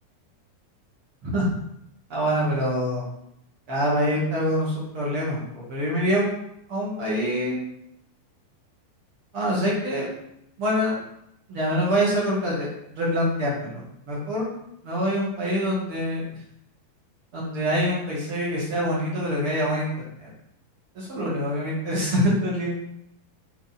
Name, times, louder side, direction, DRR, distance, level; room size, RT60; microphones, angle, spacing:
voice 1, 2.1-3.1 3.7-6.3 6.7-7.6 9.3-10.1 10.6-11.0 11.5-13.8 14.1-14.5 14.8-16.2 17.3-19.9 20.2-20.3 20.9-22.8, equal, 45° right, -6 dB, 2.3 m, -25 dB
8.5 x 4.3 x 4.3 m, 0.79 s
omnidirectional pair, 4.2 m